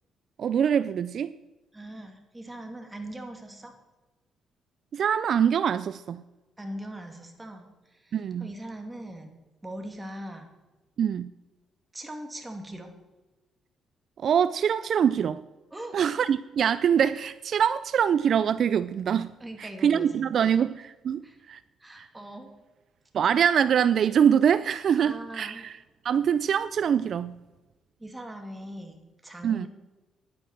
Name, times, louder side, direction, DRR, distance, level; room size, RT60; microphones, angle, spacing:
voice 1, 0.4-1.3 4.9-6.2 8.1-8.5 11.0-11.3 14.2-15.4 15.9-19.3 19.6-21.2 21.5-21.6 22.0-22.1 23.1-25.8 26.0-27.3 29.4-29.7, right 8 dB, 60° right, 0.4 m, -24 dB
voice 2, 1.7-3.7 6.6-9.4 9.6-10.5 11.9-12.9 15.7-16.0 19.4-20.3 21.2-21.4 21.8-22.5 24.9-25.6 28.0-29.7, right 1 dB, 15° right, 2.5 m, -40 dB
11.0 x 9.4 x 6.6 m
cardioid pair, 90°, 0 cm